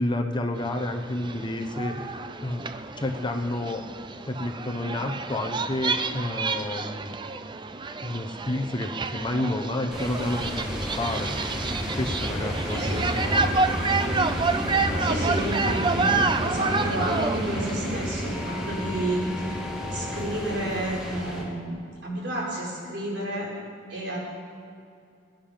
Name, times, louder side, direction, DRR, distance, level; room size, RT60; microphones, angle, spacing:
voice 1, 0.0-2.6 3.0-3.8 4.3-7.2 8.0-11.3 12.0-13.8 14.9-15.2, left 1 dB, 25° left, 5 dB, 0.9 m, -30 dB
sound 1, 0.6-18.1, right 4 dB, 25° right, 0.5 m, -29 dB
sound 2, 9.9-21.4, equal, 5° right, 2.3 m, -31 dB
voice 2, 12.7-13.1 15.0-16.2 16.4-21.7 22.0-23.5 23.9-24.2, right 1 dB, 65° right, -5 dB, 5.1 m, -31 dB
20.5 x 10.5 x 5.9 m, 2.4 s
head